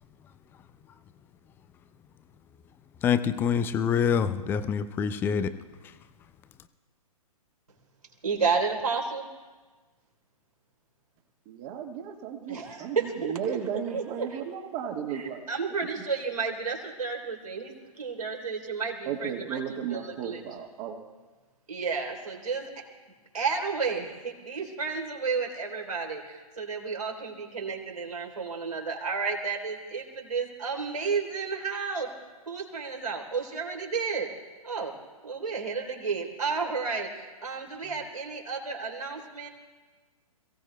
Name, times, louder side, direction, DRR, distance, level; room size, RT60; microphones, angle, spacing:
voice 1, 3.0-5.6 5.8-6.0, left 7 dB, 10° left, 12 dB, 0.5 m, -26 dB
voice 2, 8.2-9.3 12.5-13.6 13.9-14.4 15.1-19.6 19.9-20.4 21.7-22.7 23.3-32.1 32.5-34.3 34.6-34.9 35.2-39.5, right 5 dB, 70° right, 0 dB, 3.5 m, -32 dB
voice 3, 11.5-15.4 19.1-21.0, right 8 dB, 30° right, 3 dB, 1.6 m, -35 dB
27.5 x 17.0 x 2.3 m, 1.3 s
figure-of-eight pair, 120°, 19 cm